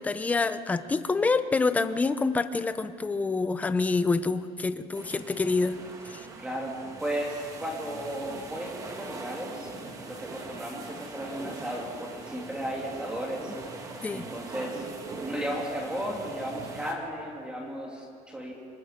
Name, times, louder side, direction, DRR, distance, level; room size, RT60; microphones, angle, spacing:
voice 1, 0.0-5.8 6.1-6.3 14.0-14.3, left 3 dB, 10° left, 12 dB, 0.5 m, -27 dB
sound 1, 4.9-16.9, right 3 dB, 20° right, 1.6 m, -42 dB
voice 2, 6.4-9.7 10.1-13.5 14.1-14.9 15.3-18.5, equal, 5° right, -1 dB, 2.5 m, -35 dB
25.5 x 21.0 x 5.1 m, 2.4 s
cardioid pair, 175°, 15 cm